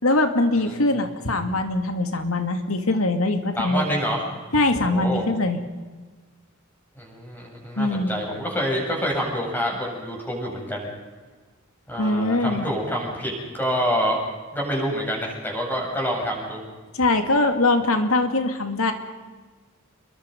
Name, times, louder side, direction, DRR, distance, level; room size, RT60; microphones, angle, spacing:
voice 1, 0.0-4.0 4.5-5.6 7.8-8.2 12.0-12.7 16.9-18.9, left 2 dB, 85° left, 7 dB, 2.4 m, -22 dB
voice 2, 3.6-4.2 4.8-5.2 7.0-10.9 11.9-14.2 14.5-16.6, equal, 10° left, -2 dB, 7.7 m, -27 dB
28.0 x 22.5 x 5.4 m, 1.3 s
head